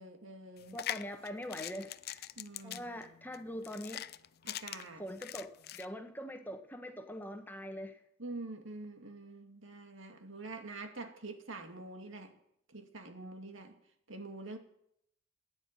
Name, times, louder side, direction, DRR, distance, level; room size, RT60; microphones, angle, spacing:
voice 1, 0.0-0.8 2.4-2.9 4.4-5.0 8.2-12.4 12.7-13.8 14.1-14.6, right 2 dB, 80° right, 6 dB, 2.2 m, -46 dB
sound 1, 0.6-5.8, left 11 dB, 50° left, 0.5 m, -43 dB
voice 2, 0.7-2.3 2.6-4.0 5.0-8.0, equal, 10° left, 6 dB, 1.4 m, -43 dB
16.0 x 10.0 x 9.0 m, 0.75 s
head